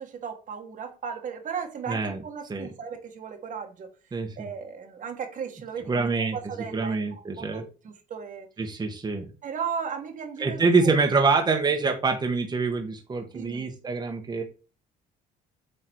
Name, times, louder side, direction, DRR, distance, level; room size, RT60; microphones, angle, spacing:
voice 1, 0.0-3.9 4.4-8.5 9.4-11.0 13.3-13.7, right 6 dB, 50° right, 1.6 m, -36 dB
voice 2, 1.9-2.2 2.5-2.7 4.1-4.5 5.9-6.4 6.7-7.6 8.6-9.3 10.4-14.4, right 4 dB, 25° right, 1.3 m, -25 dB
7.8 x 3.9 x 4.6 m
cardioid pair, 110°, 17 cm